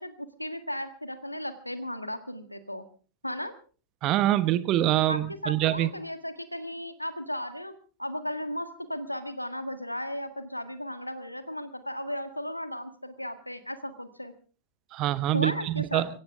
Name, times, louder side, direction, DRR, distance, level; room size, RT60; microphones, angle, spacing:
voice 1, 0.0-2.8 3.2-3.5 5.1-7.7 8.0-14.3 15.3-16.1, equal, 90° left, 10 dB, 1.7 m, -35 dB
voice 2, 4.0-5.9 14.9-16.1, right 14 dB, 35° right, 15 dB, 1.1 m, -25 dB
23.5 x 16.5 x 3.6 m, 0.39 s
figure-of-eight pair, 90°, 0 cm